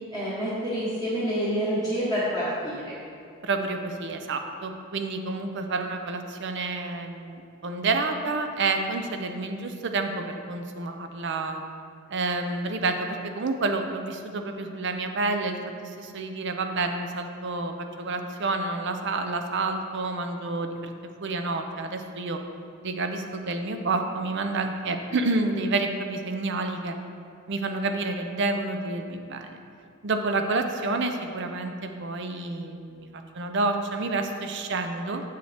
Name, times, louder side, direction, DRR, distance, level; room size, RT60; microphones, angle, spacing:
voice 1, 0.1-3.0, equal, 15° right, -12 dB, 1.2 m, -28 dB
voice 2, 3.4-11.6 12.1-20.9 21.2-22.4 22.8-27.0 27.5-29.6 30.0-33.1 33.3-35.2, right 3 dB, 50° right, 6 dB, 0.5 m, -29 dB
7.9 x 6.6 x 3.4 m, 2.4 s
head